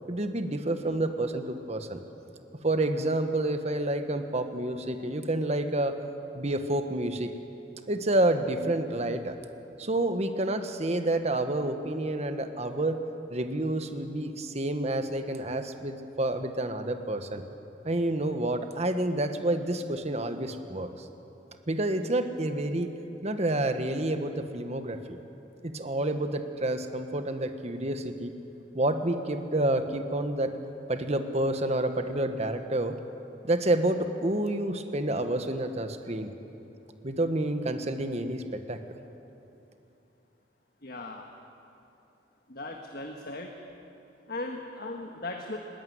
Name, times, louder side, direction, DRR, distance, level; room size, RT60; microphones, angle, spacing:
voice 1, 0.1-2.0 2.6-5.9 6.3-7.3 7.9-9.3 9.8-13.0 13.3-17.4 17.8-20.9 21.7-22.9 23.2-25.2 25.6-28.3 28.7-30.5 30.9-33.0 33.4-36.3 37.0-38.8, right 1 dB, 35° right, 8 dB, 1.2 m, -29 dB
voice 2, 40.8-41.2 42.5-43.5 44.3-45.6, left 2 dB, 55° left, 2 dB, 1.5 m, -37 dB
20.5 x 17.5 x 9.5 m, 2.9 s
head